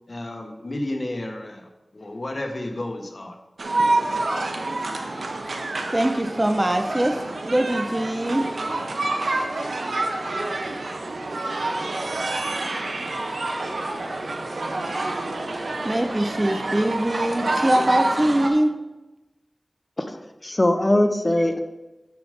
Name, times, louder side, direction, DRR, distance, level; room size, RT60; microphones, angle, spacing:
voice 1, 0.1-3.4, left 1 dB, 55° left, 3 dB, 1.2 m, -32 dB
sound 1, 3.6-18.5, right 2 dB, 85° right, 0.9 m, -27 dB
voice 2, 5.9-7.2 7.4-8.5 15.8-18.7, right 1 dB, 25° right, 8 dB, 0.6 m, -22 dB
voice 3, 20.0-21.6, left 1 dB, 30° left, 7 dB, 0.8 m, -21 dB
6.9 x 6.7 x 5.1 m, 1.0 s
wide cardioid pair, 60°, 0 cm